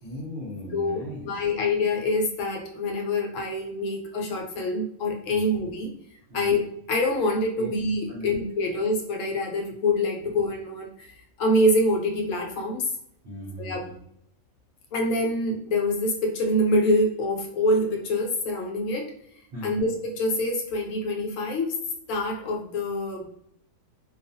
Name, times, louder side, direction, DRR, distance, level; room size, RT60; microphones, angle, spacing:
voice 1, 0.0-1.3 5.3-5.5 6.3-6.5 7.6-7.7 8.1-8.4 13.2-14.0 19.5-19.8, equal, 55° right, -6 dB, 0.7 m, -38 dB
voice 2, 0.7-5.9 6.3-11.1 11.4-12.9 13.6-13.9 14.9-19.1 19.6-21.7 22.1-23.3, left 1 dB, 70° left, 1 dB, 0.9 m, -25 dB
2.4 x 2.3 x 2.6 m, 0.71 s
omnidirectional pair, 1.5 m